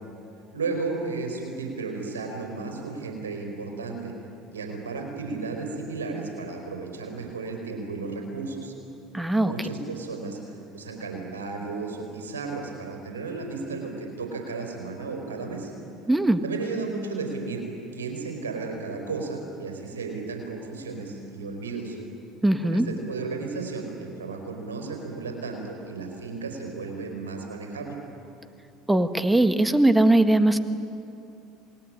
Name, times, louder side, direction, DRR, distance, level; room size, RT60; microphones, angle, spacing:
voice 1, 0.5-4.1 4.5-8.7 9.4-10.4 10.7-15.7 16.4-17.7 17.9-22.0 22.6-28.0, right 4 dB, 85° right, 3 dB, 4.4 m, -34 dB
voice 2, 9.1-9.5 16.1-16.4 22.4-22.9 28.9-30.6, right 1 dB, 10° right, 10 dB, 1.8 m, -20 dB
27.5 x 20.0 x 9.9 m, 2.7 s
hypercardioid pair, 70°, 0 cm